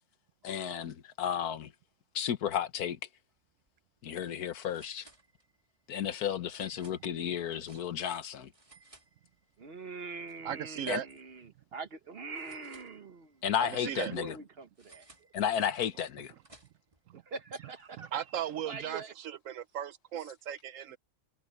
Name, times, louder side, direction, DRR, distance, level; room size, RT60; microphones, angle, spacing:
voice 1, 0.4-1.7 2.1-3.0 4.0-5.1 5.9-8.5 10.9-11.0 13.4-14.4 15.3-16.3, left 9 dB, 85° left, 1.6 m, -33 dB
sound 1, 3.5-3.7 4.0-4.1 4.7-5.7 6.5-8.2 8.5-9.7 10.0-11.4 12.3-13.4 14.8-17.0, right 2 dB, 20° right, 3.6 m, -59 dB
voice 2, 9.6-13.4 13.8-15.0 17.3-18.2 18.7-19.1, right 4 dB, 45° right, 1.3 m, -43 dB
voice 3, 10.4-11.1 13.6-14.2 17.1-17.2 18.0-21.0, right 10 dB, 70° right, 0.9 m, -37 dB
omnidirectional pair, 1.6 m